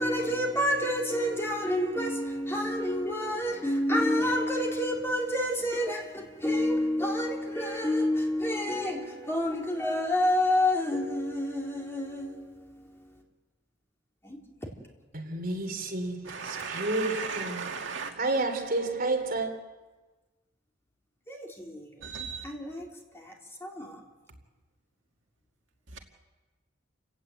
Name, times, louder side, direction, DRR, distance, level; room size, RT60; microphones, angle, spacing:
voice 1, 0.0-12.8 14.2-14.7 21.3-21.9 22.4-22.9 23.1-23.3 23.6-24.0, left 1 dB, 15° left, 3.7 m, -29 dB
voice 2, 15.3-17.8 18.2-19.5, right 2 dB, 50° right, 3.6 m, -30 dB
voice 3, 16.2-18.1 22.0-22.4 25.9-26.0, right 5 dB, 70° right, 2.2 m, -36 dB
29.5 x 17.5 x 8.1 m
head